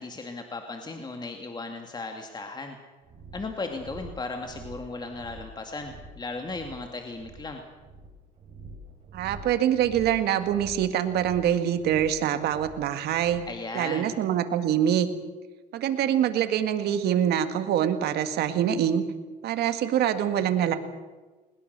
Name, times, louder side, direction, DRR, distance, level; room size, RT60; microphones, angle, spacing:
voice 1, 0.0-2.8 3.3-7.6 13.5-14.1, left 3 dB, 25° left, 4 dB, 2.2 m, -36 dB
sound 1, 3.0-13.6, right 2 dB, 45° right, 7.7 m, -46 dB
voice 2, 9.1-13.4 13.7-15.1 15.7-19.0 19.4-20.8, right 10 dB, 75° right, 9 dB, 1.9 m, -25 dB
21.0 x 20.5 x 6.8 m, 1.3 s
cardioid pair, 110°, 17 cm